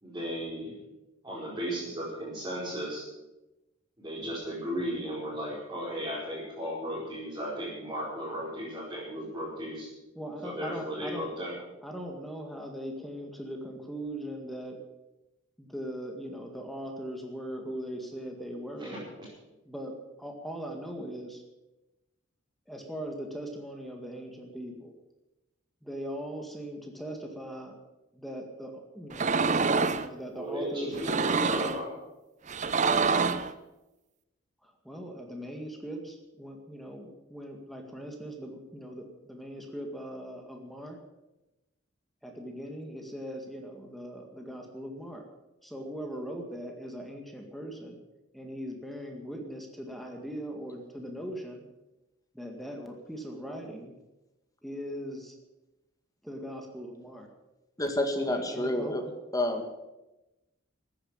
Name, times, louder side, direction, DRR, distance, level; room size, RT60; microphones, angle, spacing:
voice 1, 0.0-0.7 1.2-3.0 4.0-9.9 10.4-11.5 18.8-19.0 30.3-31.9, equal, 20° right, -8 dB, 5.2 m, -35 dB
voice 2, 10.2-11.3 11.8-14.8 15.6-19.0 19.7-21.4 22.7-24.9 25.8-27.8 28.1-32.0 34.6-41.0 42.2-45.2 45.6-48.0 48.3-51.6 52.3-53.9 54.6-55.3 56.2-57.3 58.3-59.1, equal, ahead, 2 dB, 2.0 m, -40 dB
sound 1, 29.1-30.1 30.9-31.8 32.5-33.5, right 4 dB, 35° right, 0.7 m, -26 dB
voice 3, 57.8-59.0 59.3-59.7, left 1 dB, 20° left, 4 dB, 2.0 m, -29 dB
14.5 x 9.7 x 8.8 m, 1.0 s
head